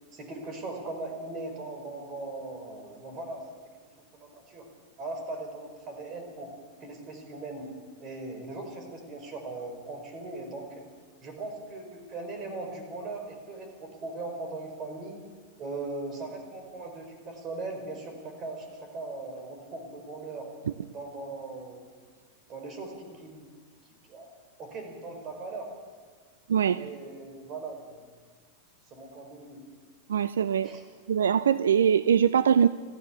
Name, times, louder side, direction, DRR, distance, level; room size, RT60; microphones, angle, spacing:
voice 1, 0.1-3.4 4.1-4.7 5.0-6.5 6.8-7.7 8.0-10.9 11.2-15.2 15.6-20.5 20.9-21.8 22.5-23.5 24.0-24.3 24.6-25.7 26.7-28.0 28.9-29.6 30.6-30.8, right 3 dB, 30° right, 5 dB, 5.0 m, -39 dB
voice 2, 30.1-30.7 31.1-32.7, right 8 dB, 65° right, 15 dB, 0.5 m, -22 dB
29.0 x 13.0 x 7.2 m, 1.5 s
figure-of-eight pair, 90°, 0 cm